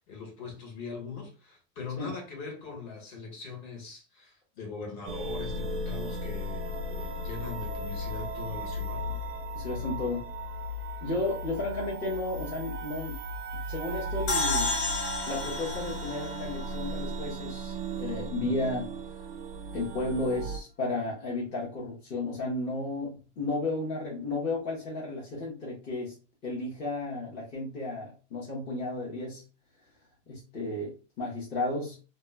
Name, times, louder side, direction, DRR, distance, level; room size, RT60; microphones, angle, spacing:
voice 1, 0.1-9.3, left 4 dB, 40° left, 1.0 m, -41 dB
sound 1, 5.1-20.6, equal, 50° right, 0.4 m, -36 dB
voice 2, 9.5-10.3 11.0-13.2 13.7-14.7 15.3-18.9 19.7-26.1 26.4-29.4 30.3-32.0, left 2 dB, 20° left, 0.5 m, -33 dB
sound 2, 14.3-17.6, left 2 dB, 65° left, 0.8 m, -32 dB
2.1 x 2.0 x 3.1 m
supercardioid pair, 160°, 35 cm